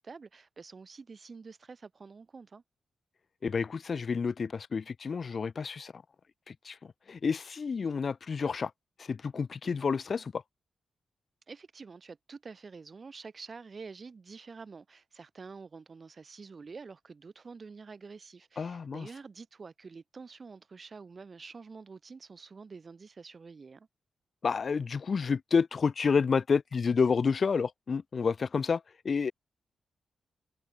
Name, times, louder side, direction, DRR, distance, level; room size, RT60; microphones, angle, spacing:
voice 1, 0.0-2.6 11.5-23.9, right 4 dB, 40° right, 1.9 m, -48 dB
voice 2, 3.4-6.0 6.5-6.8 7.1-8.7 9.0-10.4 18.6-19.1 24.4-29.3, left 5 dB, 50° left, 0.3 m, -29 dB
cardioid pair, 90°, 0 cm